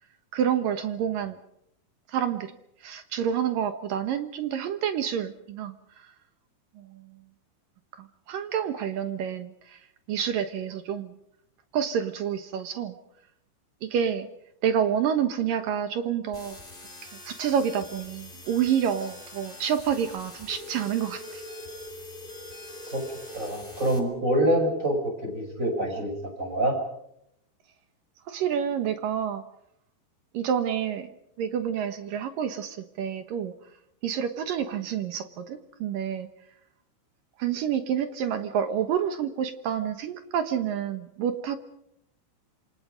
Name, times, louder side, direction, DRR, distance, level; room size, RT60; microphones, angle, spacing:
voice 1, 0.3-1.4 2.1-2.5 2.8-5.7 6.8-7.0 8.0-9.8 10.1-11.2 11.7-13.0 13.8-14.3 14.6-16.6 17.3-21.4 28.3-29.4 30.3-33.5 34.0-36.3 37.4-41.6, right 8 dB, 65° right, 9 dB, 2.3 m, -28 dB
sound 1, 16.3-24.0, left 2 dB, 10° left, 3.0 m, -45 dB
sound 2, 20.5-25.5, left 1 dB, 40° right, 6.1 m, -43 dB
voice 2, 23.3-26.1 26.4-26.8, right 1 dB, 15° right, 4 dB, 6.4 m, -26 dB
27.5 x 26.0 x 5.2 m, 0.76 s
omnidirectional pair, 5.4 m